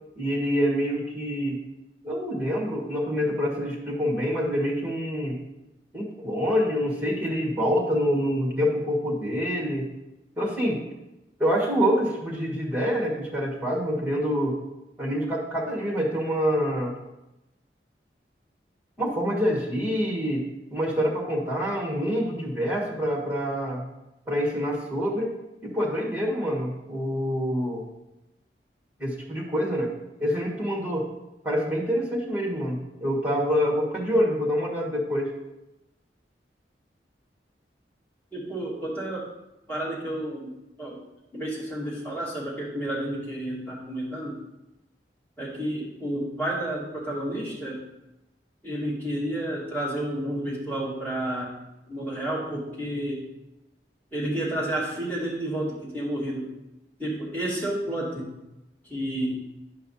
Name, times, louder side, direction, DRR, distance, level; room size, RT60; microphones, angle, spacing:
voice 1, 0.2-1.6 2.0-5.4 5.9-9.9 10.4-10.8 11.4-14.6 15.0-16.9 19.0-20.4 20.7-23.8 24.3-25.3 25.6-27.8 29.0-29.9 30.2-31.1 31.4-35.3, equal, 10° right, -3 dB, 1.7 m, -26 dB
voice 2, 38.3-39.3 39.7-40.5 40.8-41.0 41.3-44.4 45.4-47.8 48.6-51.6 51.9-53.3 54.1-56.5 57.0-58.3 58.9-59.3, right 1 dB, 10° left, -8 dB, 2.4 m, -30 dB
10.5 x 5.6 x 2.8 m, 0.96 s
head